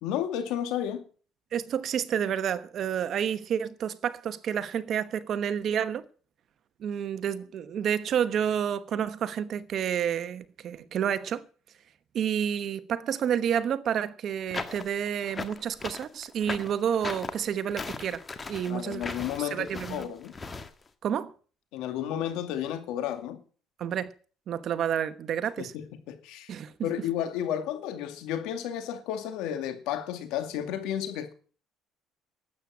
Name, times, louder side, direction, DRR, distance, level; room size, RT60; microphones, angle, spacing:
voice 1, 0.0-1.0 18.7-20.3 21.7-23.4 25.6-25.7 26.1-26.5 26.8-31.3, left 10 dB, 80° left, 2.3 m, -32 dB
voice 2, 1.5-6.0 6.8-11.4 12.1-18.2 18.5-19.0 19.4-20.1 21.0-21.3 23.8-24.1 24.5-25.7 26.5-26.9, right 8 dB, 50° right, 1.1 m, -29 dB
sound 1, 14.5-20.7, left 4 dB, 25° left, 1.6 m, -38 dB
12.5 x 8.7 x 8.6 m
cardioid pair, 110°, 0 cm